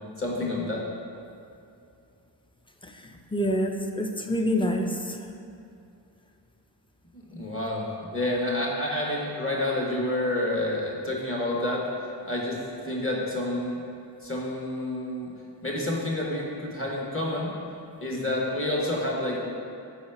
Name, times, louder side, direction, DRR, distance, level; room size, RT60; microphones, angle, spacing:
voice 1, 0.2-0.8 7.1-11.9 12.2-13.8 14.2-15.3 15.6-17.5 18.0-19.4, left 1 dB, 30° left, -3 dB, 1.3 m, -29 dB
voice 2, 2.8-5.2, equal, 10° left, 3 dB, 0.5 m, -27 dB
4.8 x 4.2 x 5.8 m, 2.6 s
wide cardioid pair, 45°, 43 cm